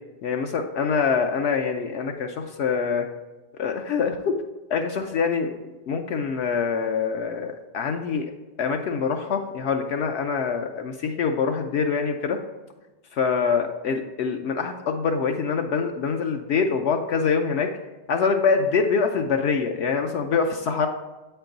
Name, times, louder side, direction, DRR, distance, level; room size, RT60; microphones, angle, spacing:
voice 1, 0.2-3.1 3.6-4.3 4.7-5.5 5.9-8.3 8.6-12.4 13.1-17.7 18.1-20.9, left 5 dB, 75° left, 4 dB, 0.8 m, -24 dB
7.8 x 4.5 x 3.8 m, 1.1 s
omnidirectional pair, 1.2 m